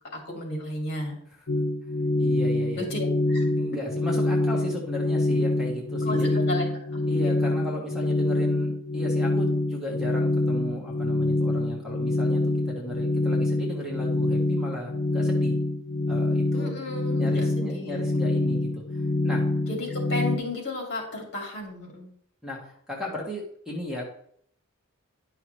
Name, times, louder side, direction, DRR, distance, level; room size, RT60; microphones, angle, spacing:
voice 1, 0.1-1.2 2.8-3.5 6.0-7.3 16.5-18.0 19.7-22.1, left 2 dB, 55° left, 0 dB, 2.4 m, -33 dB
sound 1, 1.5-20.4, left 2 dB, 70° left, 0.8 m, -25 dB
voice 2, 2.2-2.9 3.6-6.4 7.1-15.6 16.1-16.7 17.2-18.8 19.2-19.4 22.4-24.1, equal, 5° right, -2 dB, 1.4 m, -36 dB
10.5 x 5.7 x 3.2 m, 0.67 s
head